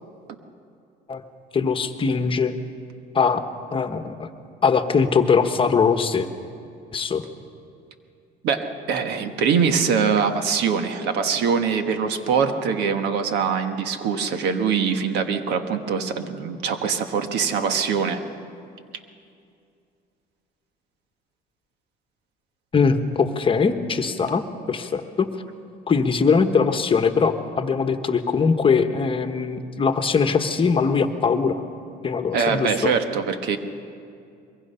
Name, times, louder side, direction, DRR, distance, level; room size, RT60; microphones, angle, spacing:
voice 1, 1.5-2.6 3.1-3.4 3.7-4.3 4.6-6.3 6.9-7.2 22.7-25.3 25.9-31.6 32.0-32.9, left 5 dB, 30° left, 8 dB, 1.2 m, -21 dB
voice 2, 8.4-18.2 32.3-33.6, right 6 dB, 80° right, 7 dB, 1.5 m, -23 dB
23.0 x 22.5 x 5.7 m, 2.4 s
cardioid pair, 110°, 17 cm